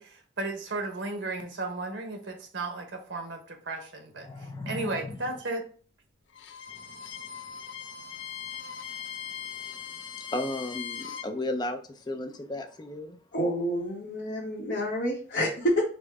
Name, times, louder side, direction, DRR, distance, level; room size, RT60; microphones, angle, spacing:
voice 1, 0.0-4.3 4.7-5.6, right 2 dB, 80° right, 4 dB, 0.9 m, -34 dB
voice 2, 4.2-5.2 6.7-7.4 7.8-13.2, left 1 dB, 20° left, 5 dB, 0.4 m, -37 dB
Bowed string instrument, 6.3-11.3, left 8 dB, 90° left, 0.5 m, -40 dB
voice 3, 13.3-15.8, equal, 65° left, -6 dB, 1.1 m, -28 dB
5.1 x 2.1 x 3.5 m, 0.42 s
head